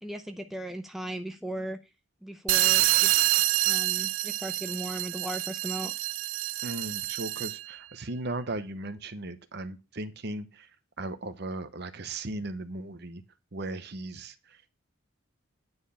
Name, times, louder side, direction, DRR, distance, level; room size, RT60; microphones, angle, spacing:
voice 1, 0.0-1.8 2.2-3.1 3.7-5.9, right 1 dB, ahead, 6 dB, 0.6 m, -37 dB
sound 1, 2.5-7.7, right 17 dB, 70° right, 0.4 m, -27 dB
voice 2, 6.6-10.7 11.0-13.2 13.5-14.7, right 2 dB, 50° right, 11 dB, 0.9 m, -37 dB
9.6 x 4.5 x 6.9 m, 0.28 s
head